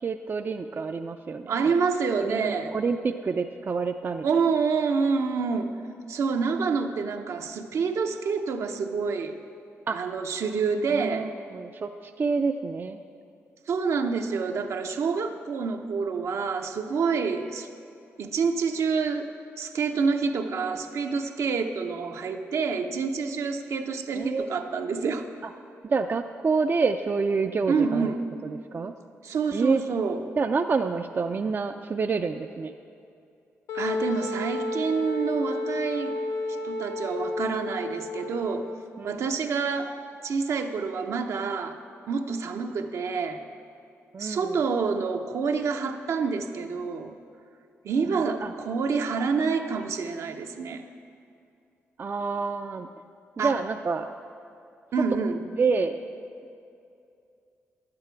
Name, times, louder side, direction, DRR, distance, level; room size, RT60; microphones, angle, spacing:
voice 1, 0.0-1.7 2.2-4.3 9.9-10.1 10.9-13.0 24.1-24.5 25.8-28.1 28.4-28.9 29.5-29.8 30.4-32.7 39.0-39.2 44.1-44.5 48.1-48.5 52.0-52.9 53.4-54.1 55.5-56.0, right 4 dB, 40° right, 6 dB, 0.4 m, -28 dB
voice 2, 1.5-2.7 4.2-5.7 6.1-9.4 9.9-11.3 13.7-17.7 18.2-19.3 19.6-25.3 27.7-28.2 29.2-30.2 33.7-36.1 36.6-38.7 39.0-40.0 40.2-41.8 42.1-43.4 44.2-47.1 47.8-50.8 53.4-53.5 54.9-55.4, right 5 dB, 70° right, 5 dB, 0.7 m, -27 dB
Wind instrument woodwind instrument, 33.7-38.8, left 2 dB, 85° left, 0.6 m, -32 dB
11.0 x 8.7 x 4.6 m, 2.5 s
cardioid pair, 65°, 5 cm